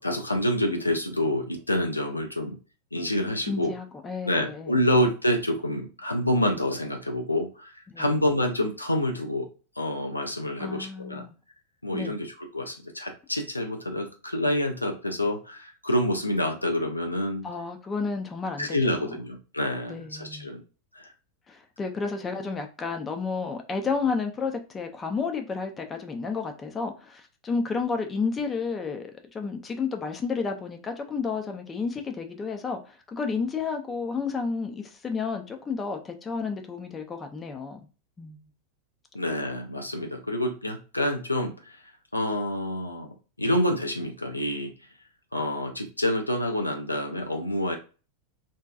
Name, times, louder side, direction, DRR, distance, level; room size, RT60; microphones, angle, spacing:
voice 1, 0.0-2.6 2.9-3.7 4.2-9.5 9.8-11.2 11.8-17.5 18.6-20.6 20.9-21.1 39.1-41.8 42.1-44.7 45.3-47.8, left 1 dB, 85° left, 0.4 m, -27 dB
voice 2, 3.5-4.8 7.9-8.1 10.6-11.3 11.9-12.2 17.4-19.2 19.9-20.5 21.5-37.8 38.2-38.4, left 5 dB, 20° left, 0.4 m, -31 dB
2.6 x 2.2 x 2.3 m
figure-of-eight pair, 90°, 0 cm